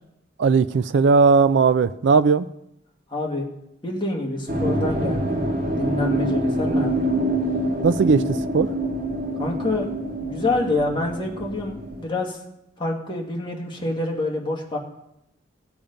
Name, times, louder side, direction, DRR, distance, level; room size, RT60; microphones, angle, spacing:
voice 1, 0.4-2.5 7.8-8.7, right 4 dB, 80° right, 13 dB, 0.4 m, -18 dB
voice 2, 3.1-3.5 3.8-5.5 5.7-7.1 9.4-9.9 10.2-12.4 12.8-14.8, left 2 dB, 30° left, -1 dB, 1.9 m, -27 dB
sound 1, 4.5-12.0, right 1 dB, 50° right, 2.0 m, -25 dB
16.0 x 7.1 x 5.2 m, 0.83 s
head